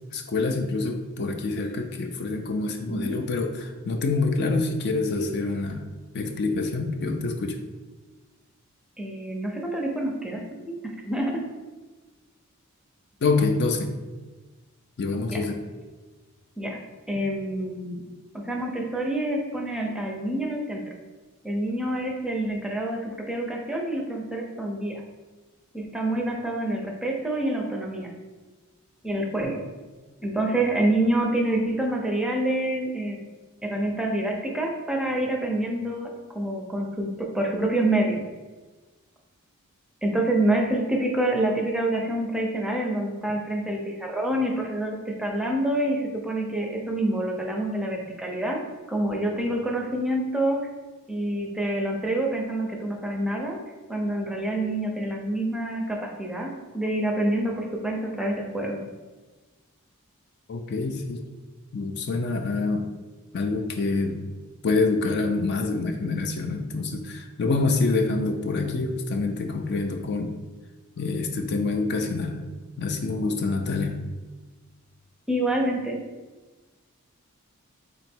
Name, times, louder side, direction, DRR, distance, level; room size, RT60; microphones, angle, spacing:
voice 1, 0.1-5.9 6.1-7.6 13.2-13.9 15.0-15.6 60.5-61.2 61.7-62.9 63.3-64.2 64.6-70.3 71.0-72.4 72.8-73.9, left 3 dB, 50° left, 4 dB, 0.4 m, -26 dB
voice 2, 9.0-10.8 11.0-11.4 15.3-15.4 16.6-16.8 17.1-18.0 18.3-20.8 21.4-25.0 25.7-28.1 29.0-29.6 30.2-33.2 33.6-38.2 40.0-48.6 48.9-50.6 51.1-53.6 53.9-58.8 75.3-76.0, right 1 dB, 5° right, 0 dB, 0.5 m, -27 dB
3.9 x 3.1 x 4.4 m, 1.3 s
head